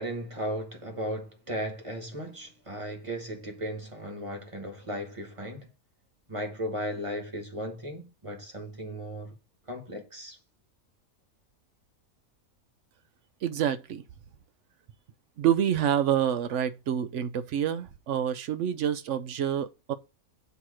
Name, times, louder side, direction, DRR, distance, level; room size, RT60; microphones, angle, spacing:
voice 1, 0.0-5.7 6.3-9.4 9.7-10.4, equal, 25° right, 1.2 m, -36 dB
voice 2, 13.4-14.0 15.4-19.9, right 9 dB, 70° right, 0.9 m, -27 dB
8.0 x 3.0 x 6.1 m
omnidirectional pair, 1.4 m